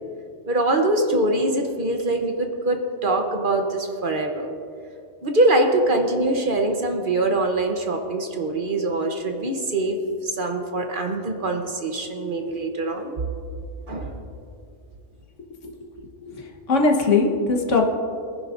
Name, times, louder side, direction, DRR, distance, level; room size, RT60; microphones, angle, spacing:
voice 1, 0.5-4.5 5.2-13.2 13.9-14.2, right 2 dB, 45° right, 3 dB, 1.1 m, -23 dB
voice 2, 16.2-17.9, left 3 dB, 80° left, 2 dB, 1.6 m, -20 dB
22.5 x 10.5 x 2.6 m, 2.4 s
omnidirectional pair, 1.3 m